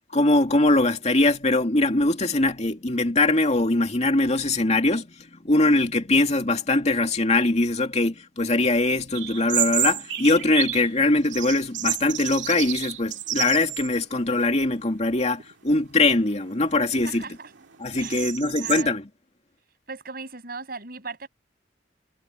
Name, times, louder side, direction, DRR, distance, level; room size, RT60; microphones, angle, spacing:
voice 1, 0.1-17.3 17.8-19.1, left 2 dB, 35° left, 2.4 m, -22 dB
sound 1, 9.1-10.9 11.2-14.0 14.3-14.4 15.2-15.5 16.0-18.8, right 12 dB, 85° right, 2.1 m, -30 dB
voice 2, 17.0-17.5 17.9-18.3 18.6-19.0 19.9-21.3, right 4 dB, 55° right, 7.5 m, -38 dB
head